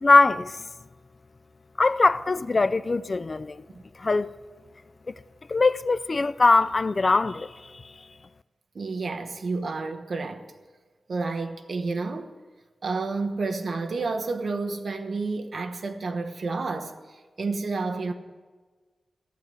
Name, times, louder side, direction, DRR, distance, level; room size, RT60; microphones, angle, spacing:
voice 1, 0.0-0.6 1.8-3.6 4.0-4.3 5.1-5.2 5.5-7.9, left 3 dB, 35° left, 0.4 m, -22 dB
voice 2, 8.7-10.5 11.1-12.3 12.8-16.9 17.4-18.1, right 3 dB, 55° right, 1.2 m, -30 dB
14.5 x 11.0 x 7.8 m
wide cardioid pair, 110°, 0 cm